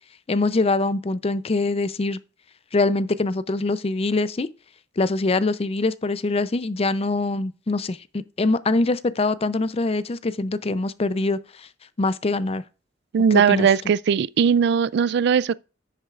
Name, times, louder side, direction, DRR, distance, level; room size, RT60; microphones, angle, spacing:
voice 1, 0.3-2.2 2.7-4.5 5.0-11.7 12.0-12.6 13.3-13.7, left 3 dB, 35° left, 0.5 m, -23 dB
voice 2, 13.1-15.5, right 7 dB, 65° right, 0.3 m, -19 dB
10.0 x 8.1 x 2.4 m
head